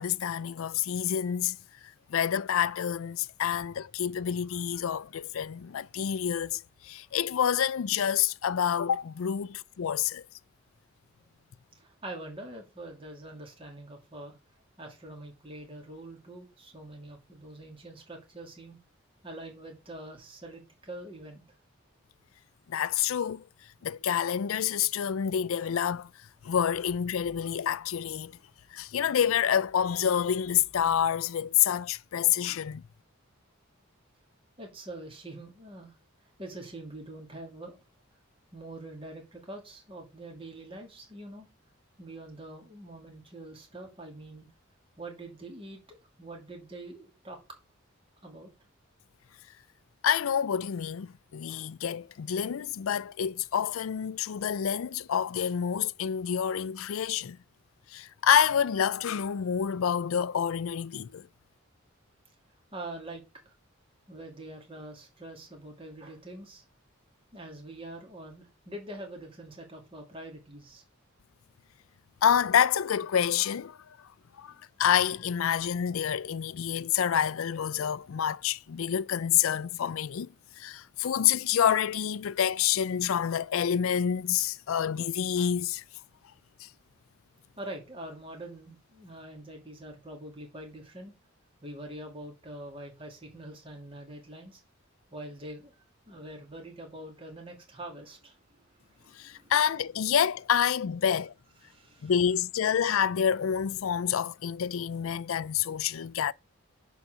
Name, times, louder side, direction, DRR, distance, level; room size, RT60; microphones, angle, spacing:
voice 1, 0.0-1.6 2.1-10.2 22.7-23.4 23.8-26.1 26.4-28.4 28.7-32.8 50.0-57.4 57.9-61.3 72.2-73.8 74.4-74.5 74.8-85.8 86.6-86.7 99.2-101.3 102.0-106.3, left 8 dB, 75° left, 0.4 m, -28 dB
voice 2, 11.8-14.4 14.8-18.8 19.2-21.4 34.6-35.9 36.4-37.8 38.5-41.5 42.0-44.5 45.0-47.4 48.2-48.5 62.7-63.5 64.1-66.6 67.3-70.8 74.4-74.6 87.6-91.1 91.6-94.6 95.1-95.7 96.1-99.5 101.6-102.1, right 1 dB, 25° right, 2.6 m, -44 dB
10.5 x 4.1 x 6.7 m
head